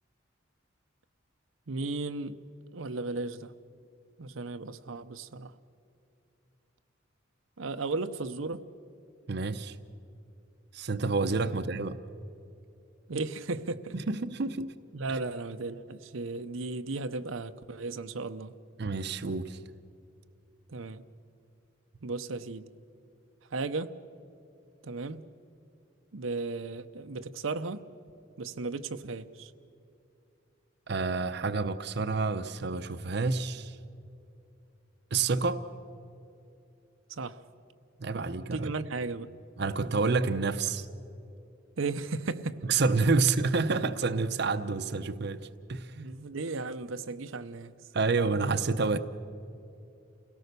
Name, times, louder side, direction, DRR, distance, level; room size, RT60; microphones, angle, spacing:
voice 1, 1.7-2.4 2.7-3.5 4.2-5.5 7.6-8.7 13.1-13.9 14.9-18.5 20.7-21.0 22.0-22.7 23.5-24.0 24.8-25.3 26.1-27.9 28.4-29.5 37.1-37.4 38.1-38.2 38.5-39.4 41.8-42.6 46.0-47.8, right 3 dB, 85° right, 0.8 m, -35 dB
voice 2, 9.3-9.8 10.7-12.0 13.9-14.7 15.1-15.2 18.8-19.6 30.9-33.8 35.1-35.6 38.0-38.7 39.6-40.9 42.7-46.0 47.9-49.0, right 4 dB, 55° right, 0.7 m, -28 dB
29.0 x 17.5 x 6.8 m
head